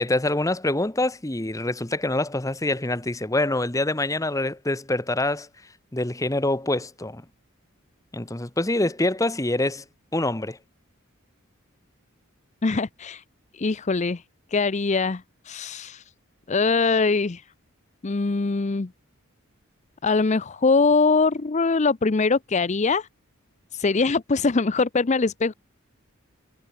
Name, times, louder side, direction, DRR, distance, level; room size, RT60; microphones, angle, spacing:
voice 1, 0.0-5.5 5.9-7.2 8.1-9.8 10.1-10.6, left 2 dB, 15° left, 1.1 m, -25 dB
voice 2, 12.6-13.2 13.5-14.2 14.5-16.0 16.5-17.4 18.0-18.9 20.0-23.1 23.7-25.5, left 4 dB, 35° left, 0.5 m, -22 dB
head